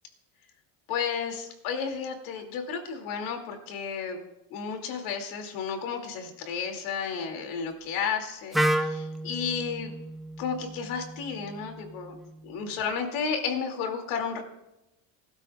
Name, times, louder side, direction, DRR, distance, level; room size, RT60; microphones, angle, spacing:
voice 1, 0.9-9.9 10.4-12.1 12.4-14.4, left 6 dB, 80° left, 4 dB, 2.4 m, -32 dB
Wind instrument woodwind instrument, 8.5-12.4, right 1 dB, ahead, 0.4 m, -32 dB
19.0 x 12.5 x 2.3 m, 0.89 s
cardioid pair, 130°, 49 cm